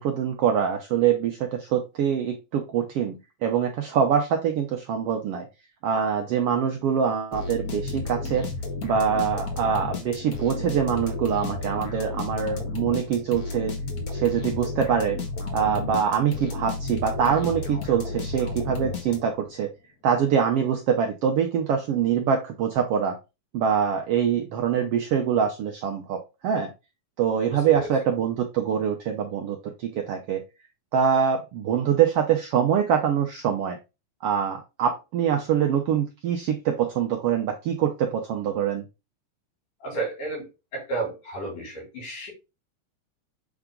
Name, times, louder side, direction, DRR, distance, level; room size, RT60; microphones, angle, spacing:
voice 1, 0.0-5.5 5.8-8.5 8.8-13.7 14.1-15.2 15.5-19.7 20.0-23.2 23.5-26.7 27.2-30.4 30.9-33.8 34.2-38.8, right 8 dB, 80° right, 1.3 m, -24 dB
sound 1, 7.3-19.5, left 3 dB, 65° left, 0.9 m, -32 dB
voice 2, 27.4-27.9 39.8-42.3, right 3 dB, 85° left, 4.5 m, -32 dB
7.0 x 3.6 x 3.7 m
omnidirectional pair, 3.5 m